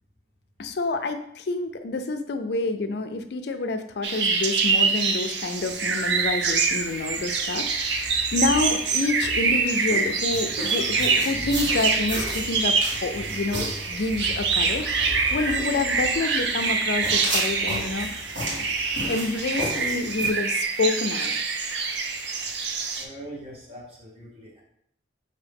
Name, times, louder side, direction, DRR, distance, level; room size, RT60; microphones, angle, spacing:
voice 1, 0.6-18.7 19.1-21.3, left 3 dB, 60° left, 8 dB, 0.4 m, -28 dB
sound 1, 4.0-23.0, right 4 dB, 70° right, 0.5 m, -25 dB
sound 2, 5.6-20.3, equal, 90° right, 1.5 m, -35 dB
voice 2, 22.9-24.6, right 1 dB, 30° right, -3 dB, 1.2 m, -42 dB
5.8 x 2.7 x 3.5 m, 0.71 s
head